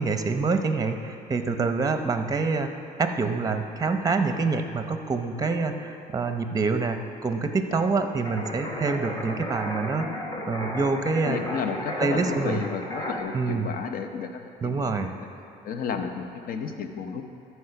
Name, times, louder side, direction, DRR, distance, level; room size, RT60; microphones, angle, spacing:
voice 1, 0.0-2.7 3.0-11.5 12.0-12.6 13.3-13.7 14.6-15.1, right 4 dB, 20° right, 7 dB, 0.7 m, -26 dB
sound 1, 8.2-13.2, left 1 dB, 25° left, 1.5 m, -34 dB
voice 2, 11.3-15.0 15.6-17.2, left 6 dB, 55° left, 6 dB, 0.8 m, -32 dB
13.5 x 4.7 x 5.9 m, 2.8 s
cardioid pair, 110°, 17 cm